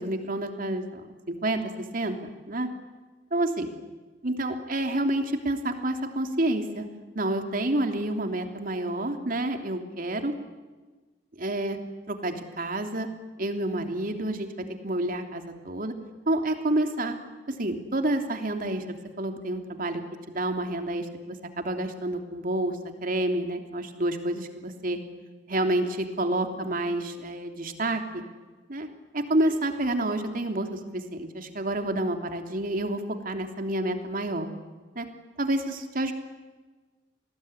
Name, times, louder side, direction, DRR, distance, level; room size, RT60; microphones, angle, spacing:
voice 1, 0.0-1.6 1.9-2.7 3.3-3.7 4.2-6.8 7.1-10.3 11.4-11.8 12.1-13.1 13.4-15.9 16.3-17.1 17.5-18.8 19.2-20.0 20.3-25.0 25.5-28.2 28.7-28.9 29.1-34.5 34.9-35.1 35.4-36.1, right 1 dB, 50° right, 5 dB, 3.2 m, -29 dB
29.0 x 20.5 x 10.0 m, 1.3 s
head